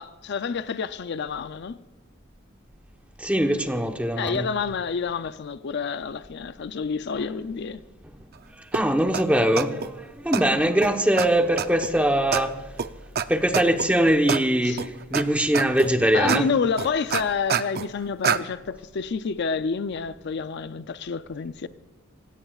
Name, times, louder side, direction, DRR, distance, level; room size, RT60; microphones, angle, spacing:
voice 1, 0.0-1.8 4.1-7.8 10.5-10.7 14.6-14.8 16.1-21.7, left 5 dB, 55° left, 0.5 m, -29 dB
voice 2, 3.2-4.5 8.6-12.6 13.3-16.5, right 1 dB, 5° right, 1.0 m, -22 dB
sound 1, 8.7-8.8 9.1-9.2 9.6-9.9 10.3-10.4 10.8-10.9 11.2-11.3 11.6-11.9 12.3-12.4 12.8-12.9 13.2-13.3 13.5-13.9 14.3-14.4 14.8-15.2 15.5-15.9 16.3-16.4 16.8-17.9 18.2-18.4, right 7 dB, 50° right, 0.5 m, -25 dB
26.0 x 16.5 x 2.4 m
head